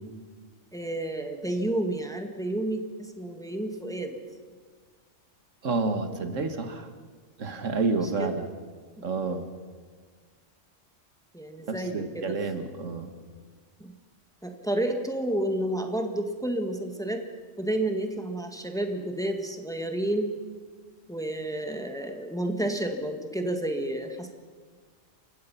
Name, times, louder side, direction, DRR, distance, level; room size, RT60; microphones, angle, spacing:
voice 1, 0.7-4.2 8.2-8.4 9.0-9.1 11.3-12.4 13.8-13.9 14.4-17.2 17.6-20.3 21.1-24.3, right 1 dB, 5° left, 4 dB, 1.7 m, -30 dB
voice 2, 5.6-6.9 7.4-8.5 9.0-9.5 11.7-13.1, right 3 dB, 80° right, 8 dB, 1.9 m, -29 dB
29.0 x 16.0 x 5.7 m, 1.5 s
omnidirectional pair, 1.3 m